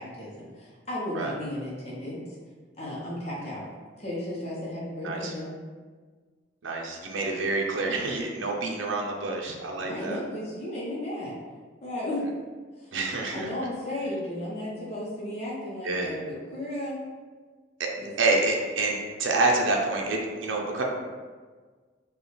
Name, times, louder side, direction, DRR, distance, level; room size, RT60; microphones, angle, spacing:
voice 1, 0.0-2.4 2.8-3.6 4.0-5.5 9.8-11.3 11.8-12.3 12.8-12.9 13.3-17.0 18.0-18.1, left 1 dB, 35° left, -6 dB, 0.8 m, -34 dB
voice 2, 6.6-10.2 12.9-13.5 15.8-16.1 17.8-17.9 18.2-20.8, right 3 dB, 80° right, 0 dB, 0.6 m, -27 dB
5.2 x 2.4 x 3.2 m, 1.5 s
head